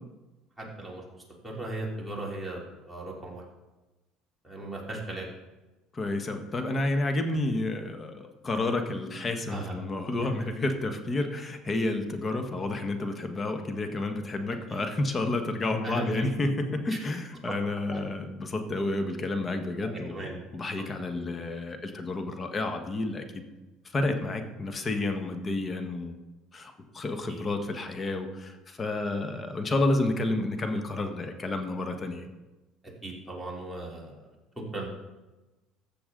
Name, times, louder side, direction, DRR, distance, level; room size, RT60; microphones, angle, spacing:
voice 1, 0.6-1.0 1.4-2.6 2.9-3.4 4.4-5.3 9.5-9.7 10.2-10.3 14.7-14.8 15.8-16.3 16.9-17.0 17.9-18.0 19.8-20.4 21.1-21.3 27.3-27.4 33.0-34.1 34.7-34.9, right 2 dB, 5° right, -4 dB, 3.2 m, -37 dB
voice 2, 5.9-20.2 20.5-23.4 23.9-26.2 26.5-32.3, left 2 dB, 25° left, 5 dB, 1.3 m, -30 dB
14.0 x 6.8 x 3.8 m, 1.1 s
supercardioid pair, 100°, 0 cm